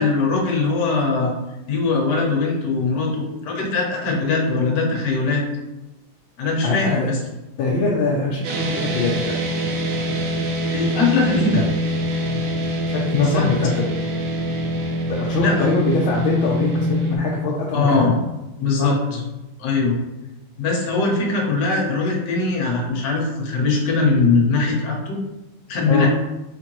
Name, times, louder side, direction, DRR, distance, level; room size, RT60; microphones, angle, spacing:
voice 1, 0.0-1.3 1.7-5.4 6.4-7.2 10.7-11.6 13.1-13.5 15.4-15.6 17.7-18.1 18.6-19.0 19.6-20.0 20.6-25.2 25.7-26.1, left 3 dB, 60° left, -1 dB, 1.5 m, -21 dB
voice 2, 6.6-7.1 7.6-9.3 11.5-11.7 12.2-12.4 12.9-14.0 15.1-18.1 18.8-19.0 25.9-26.1, left 3 dB, 75° left, -2 dB, 1.4 m, -23 dB
sound 1, 8.4-17.2, equal, 85° right, 1.6 m, -24 dB
4.5 x 3.5 x 3.0 m, 1.0 s
omnidirectional pair, 2.3 m